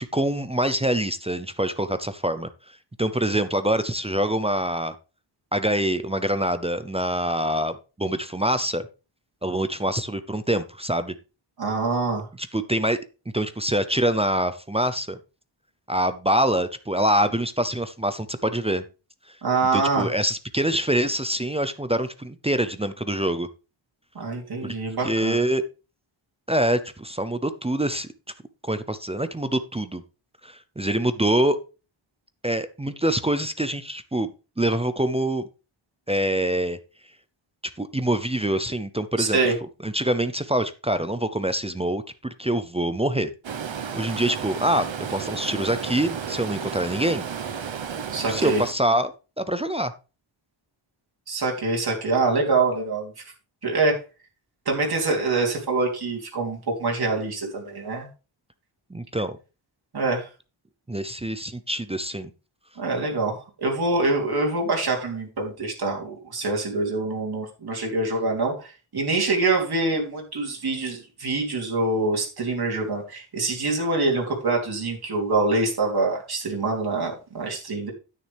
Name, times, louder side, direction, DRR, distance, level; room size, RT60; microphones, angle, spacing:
voice 1, 0.0-2.5 3.0-4.9 5.5-8.9 9.4-11.1 12.4-13.0 13.3-15.2 15.9-18.8 19.7-23.5 24.6-24.7 25.0-25.6 26.5-28.1 28.6-30.0 30.4-31.6 32.4-34.3 34.6-35.4 36.1-36.8 37.8-39.4 39.8-43.3 43.9-47.3 48.3-49.9 58.9-59.4 60.9-62.3, right 1 dB, 15° right, 11 dB, 0.5 m, -25 dB
voice 2, 11.6-12.3 19.4-20.1 24.1-25.4 39.2-39.5 48.1-48.6 51.3-53.1 53.6-54.0 54.6-58.1 59.9-60.3 62.8-77.9, right 3 dB, 50° right, -1 dB, 3.4 m, -25 dB
Stream, 43.4-48.7, right 7 dB, 70° right, 1.1 m, -32 dB
9.9 x 9.1 x 3.4 m, 0.31 s
wide cardioid pair, 160°, 48 cm